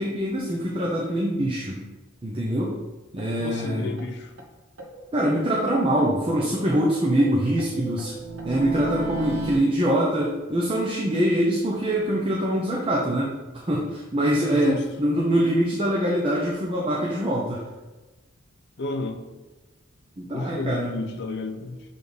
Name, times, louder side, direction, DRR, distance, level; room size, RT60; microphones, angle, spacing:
voice 1, 0.0-1.8 2.2-2.7 3.1-3.9 5.1-8.1 8.4-13.3 13.7-17.6 20.2-21.0, right 1 dB, 25° right, -3 dB, 0.7 m, -24 dB
sound 1, 3.2-3.3 3.6-3.7 4.0-4.1 4.4-4.5 4.8-6.1 6.4-9.6, right 2 dB, 80° right, 1.0 m, -35 dB
voice 2, 3.4-4.3 14.5-14.8 18.8-19.2 20.3-21.8, left 3 dB, 55° left, 5 dB, 0.5 m, -31 dB
6.9 x 3.5 x 3.9 m, 1.2 s
head